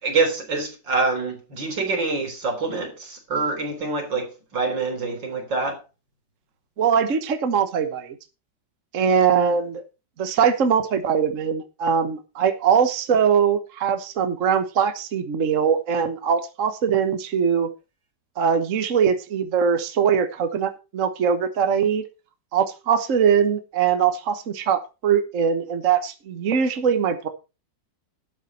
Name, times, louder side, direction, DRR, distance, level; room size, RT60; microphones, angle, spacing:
voice 1, 0.0-5.8, right 3 dB, 85° right, 4.2 m, -25 dB
voice 2, 6.8-8.2 8.9-9.8 10.2-17.7 18.4-22.0 22.5-27.3, right 7 dB, 50° right, 1.4 m, -21 dB
12.5 x 7.9 x 4.3 m
omnidirectional pair, 1.9 m